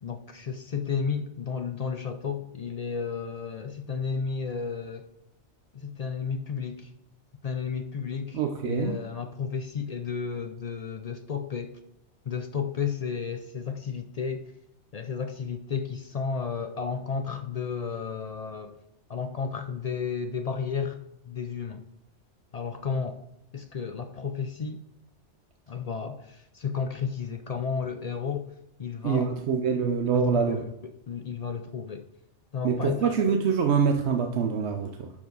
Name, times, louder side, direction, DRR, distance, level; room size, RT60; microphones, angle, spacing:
voice 1, 0.0-5.1 5.7-6.9 7.4-11.8 12.3-14.5 14.9-18.8 19.1-21.8 22.5-23.2 23.5-24.8 25.7-28.5 28.8-29.3 30.1-32.0 32.5-33.2, left 6 dB, 50° left, 0.4 m, -33 dB
voice 2, 8.3-9.0 29.0-30.6 32.6-35.1, right 6 dB, 70° right, 0.9 m, -25 dB
11.5 x 4.7 x 3.9 m
omnidirectional pair, 1.2 m